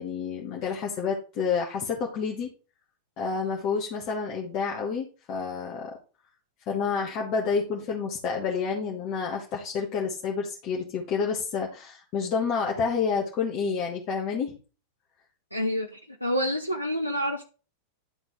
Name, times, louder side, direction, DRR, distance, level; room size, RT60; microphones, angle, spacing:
voice 1, 0.0-2.5 3.2-5.9 6.7-14.6, left 5 dB, 40° left, -2 dB, 1.6 m, -29 dB
voice 2, 15.5-17.4, equal, 90° left, 3 dB, 0.7 m, -28 dB
11.0 x 3.9 x 4.9 m, 0.36 s
figure-of-eight pair, 90°, 0 cm